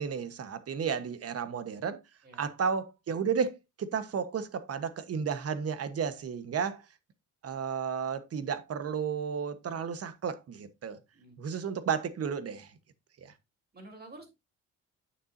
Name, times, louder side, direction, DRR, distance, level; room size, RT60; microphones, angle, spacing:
voice 1, 0.0-2.0 2.3-6.8 7.4-11.0 11.4-12.7 13.2-13.3, right 6 dB, 50° right, 1.3 m, -33 dB
voice 2, 13.7-14.3, right 2 dB, 30° right, 3.6 m, -49 dB
9.0 x 6.8 x 2.7 m
cardioid pair, 90°, 30 cm